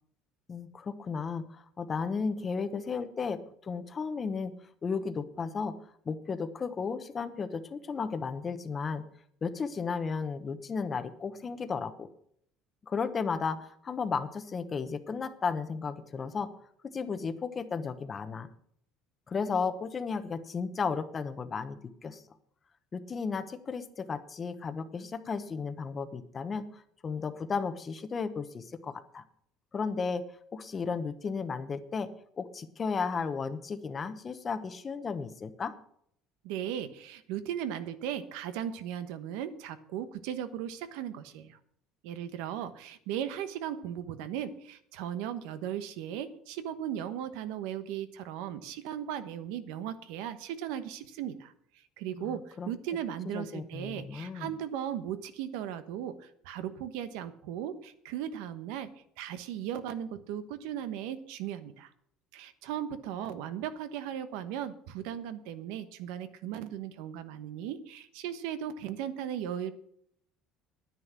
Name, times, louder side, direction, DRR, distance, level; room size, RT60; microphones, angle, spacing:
voice 1, 0.5-4.5 4.8-5.7 6.0-9.1 9.4-12.1 12.8-16.5 16.8-18.5 19.3-22.2 22.9-29.2 29.7-30.2 30.5-32.1 32.4-35.7 52.2-52.7 53.2-54.6, left 5 dB, 25° left, 11 dB, 0.9 m, -34 dB
voice 2, 36.4-41.6 42.0-51.5 52.0-58.9 59.2-61.9 62.3-69.7, right 10 dB, 85° right, 12 dB, 1.1 m, -37 dB
10.5 x 9.8 x 6.0 m, 0.68 s
cardioid pair, 145°, 0 cm